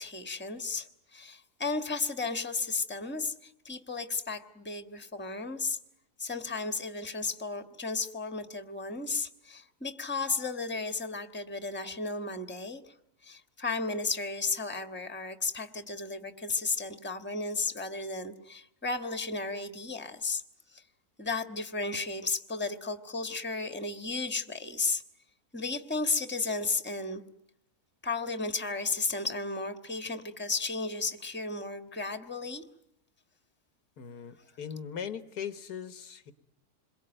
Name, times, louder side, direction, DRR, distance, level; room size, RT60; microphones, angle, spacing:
voice 1, 0.0-5.8 6.2-12.9 13.2-20.4 20.7-20.8 21.2-25.0 25.5-27.2 28.0-32.6, left 3 dB, 5° left, 9 dB, 1.3 m, -34 dB
voice 2, 34.0-36.3, left 7 dB, 85° left, 11 dB, 1.8 m, -39 dB
27.5 x 22.5 x 9.0 m, 0.79 s
omnidirectional pair, 1.7 m